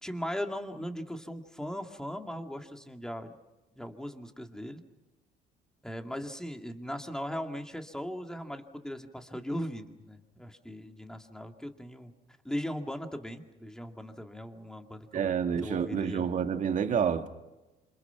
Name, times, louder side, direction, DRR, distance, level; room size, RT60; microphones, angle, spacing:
voice 1, 0.0-3.3 3.8-4.8 5.8-12.1 12.4-15.3 15.6-16.3, equal, 5° left, 2.3 m, -38 dB
voice 2, 15.1-17.3, right 7 dB, 50° right, 1.9 m, -28 dB
27.5 x 27.0 x 5.9 m
cardioid pair, 110°, 17 cm